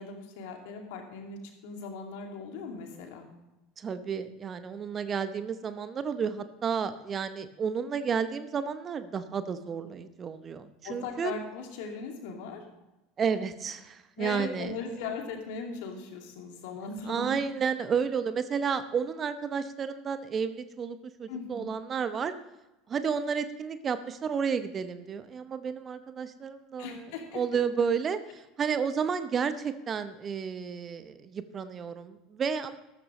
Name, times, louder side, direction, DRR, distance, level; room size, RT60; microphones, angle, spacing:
voice 1, 0.0-3.3 10.8-12.6 14.2-17.4 21.3-21.7 26.8-27.4, left 4 dB, 60° left, 2 dB, 2.3 m, -39 dB
voice 2, 3.8-11.3 13.2-14.7 17.1-22.3 22.9-27.1 27.3-32.8, right 6 dB, 30° right, 12 dB, 0.8 m, -31 dB
13.5 x 13.0 x 3.2 m, 0.99 s
figure-of-eight pair, 75°, 0 cm